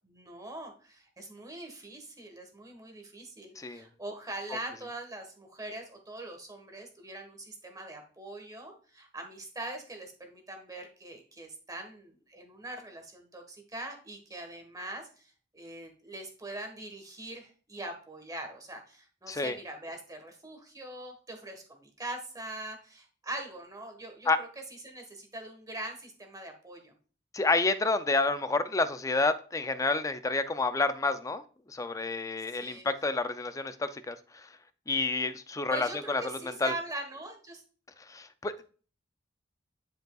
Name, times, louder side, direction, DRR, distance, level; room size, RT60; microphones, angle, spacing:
voice 1, 0.0-24.5 24.8-26.9 32.5-32.9 35.7-37.6, right 2 dB, 20° right, 4 dB, 1.4 m, -42 dB
voice 2, 3.6-3.9 19.3-19.6 24.3-24.4 27.3-31.4 31.7-34.5 34.9-36.7 38.1-38.6, left 3 dB, 15° left, 11 dB, 0.4 m, -29 dB
10.0 x 5.2 x 2.4 m, 0.40 s
head